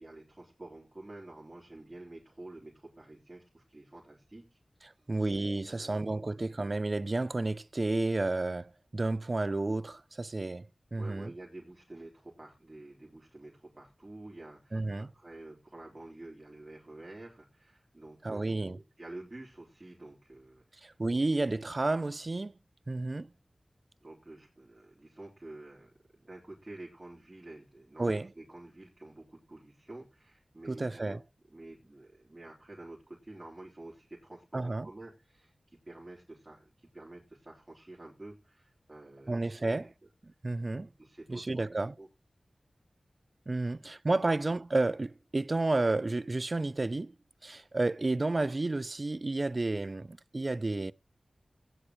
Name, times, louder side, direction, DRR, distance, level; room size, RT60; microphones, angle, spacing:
voice 1, 0.0-4.6 5.0-5.1 5.6-6.4 11.0-21.0 24.0-31.2 31.5-39.9 40.8-42.1, right 2 dB, 30° right, 4.0 m, -49 dB
voice 2, 5.1-10.7 10.9-11.3 14.7-15.1 18.2-18.8 20.8-22.5 22.9-23.3 28.0-28.3 30.7-31.2 34.5-34.9 39.3-39.9 40.4-40.9 41.3-41.9 43.5-47.1 47.4-50.9, right 2 dB, 45° right, 0.6 m, -31 dB
16.5 x 10.0 x 3.2 m
wide cardioid pair, 50°, 0 cm